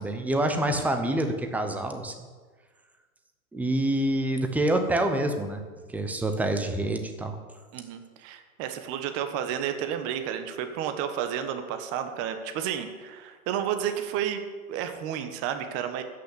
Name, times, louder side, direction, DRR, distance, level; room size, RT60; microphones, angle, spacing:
voice 1, 0.0-2.1 3.5-5.6 5.9-7.3, right 1 dB, 5° right, 6 dB, 0.9 m, -26 dB
voice 2, 7.7-14.4 14.7-16.0, right 9 dB, 35° right, 7 dB, 1.3 m, -31 dB
13.5 x 5.9 x 8.3 m, 1.4 s
hypercardioid pair, 130°, 44 cm